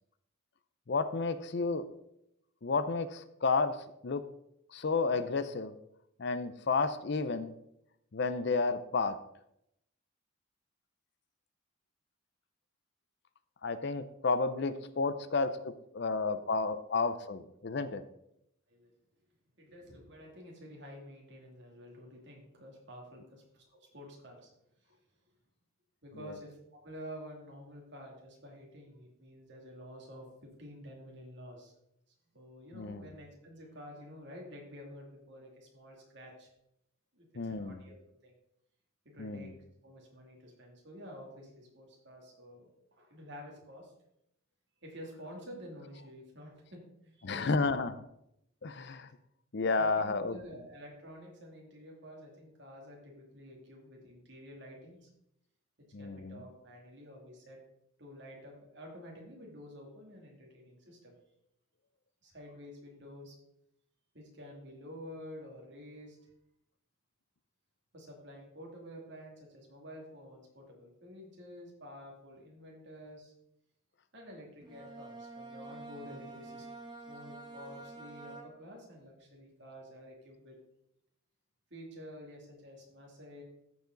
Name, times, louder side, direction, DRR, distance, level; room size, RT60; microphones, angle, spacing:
voice 1, 0.9-1.9 2.6-3.8 4.0-4.2 4.7-5.8 6.2-7.5 8.1-9.2 13.6-18.0 26.2-26.3 32.7-33.1 37.4-37.8 39.2-39.5 47.2-47.9 48.6-49.1 49.5-50.4 55.9-56.4, left 4 dB, 50° left, 12 dB, 0.5 m, -31 dB
voice 2, 19.6-23.6 23.9-24.5 26.0-31.7 32.3-36.5 37.1-38.3 39.0-39.5 39.8-43.9 44.8-47.7 49.8-55.1 56.0-57.6 58.0-61.1 62.2-63.3 64.1-66.2 67.9-73.3 74.1-76.7 77.1-80.6 81.7-83.4, equal, 55° right, -1 dB, 2.5 m, -50 dB
Bowed string instrument, 74.6-78.9, right 3 dB, 20° right, 1.2 m, -48 dB
14.0 x 4.9 x 3.9 m, 0.79 s
head